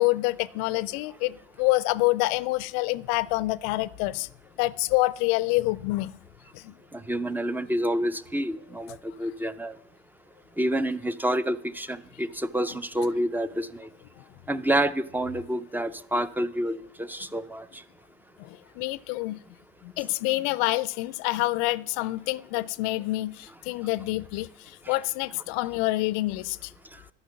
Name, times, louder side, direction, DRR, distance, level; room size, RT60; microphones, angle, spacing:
voice 1, 0.0-4.3 4.6-6.1 6.5-6.7 18.4-19.4 19.8-26.7, left 20 dB, 65° left, 0.4 m, -27 dB
voice 2, 6.9-9.8 10.6-13.9 14.5-17.8 24.9-25.0, right 1 dB, 5° right, 0.4 m, -28 dB
11.5 x 5.6 x 5.8 m
hypercardioid pair, 70°, 30 cm